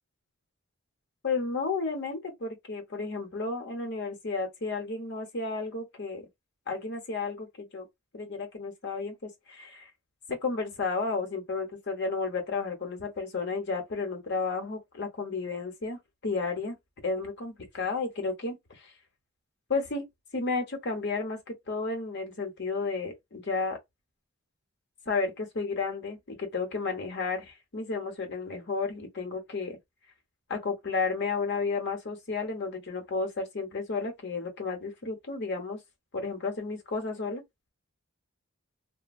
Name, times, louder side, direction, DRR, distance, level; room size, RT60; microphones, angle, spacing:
voice 1, 1.2-6.3 6.7-7.9 8.1-9.9 10.3-16.8 17.0-18.9 19.7-20.0 20.3-23.8 25.1-29.8 30.5-35.8 36.1-37.4, left 4 dB, 55° left, 1.0 m, -32 dB
3.1 x 2.1 x 2.4 m
head